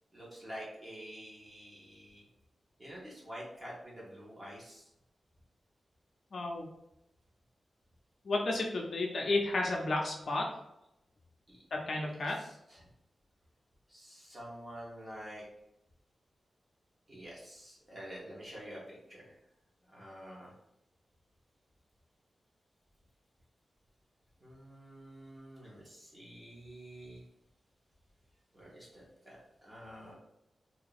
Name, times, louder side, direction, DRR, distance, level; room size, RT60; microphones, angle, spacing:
voice 1, 0.1-2.2 2.8-4.9 11.5-11.6 12.0-12.9 13.9-15.4 17.1-19.4 19.9-20.5 24.4-27.2 28.5-30.1, equal, 20° right, -5 dB, 1.2 m, -48 dB
voice 2, 6.3-6.7 8.2-10.5 11.7-12.4, left 2 dB, 50° left, 0 dB, 0.6 m, -32 dB
2.8 x 2.8 x 4.0 m, 0.84 s
wide cardioid pair, 180°, 0 cm